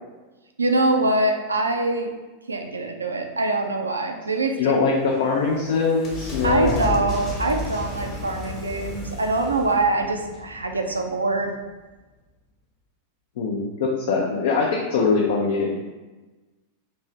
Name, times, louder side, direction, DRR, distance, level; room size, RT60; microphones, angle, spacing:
voice 1, 0.6-2.1 2.5-4.8 6.4-11.6, right 2 dB, 75° right, 4 dB, 0.3 m, -24 dB
voice 2, 4.6-7.1 13.4-15.8, left 4 dB, 55° left, -2 dB, 0.4 m, -22 dB
sound 1, 4.9-11.3, left 2 dB, 30° left, 1.0 m, -33 dB
2.7 x 2.7 x 3.1 m, 1.2 s
figure-of-eight pair, 90°, 0 cm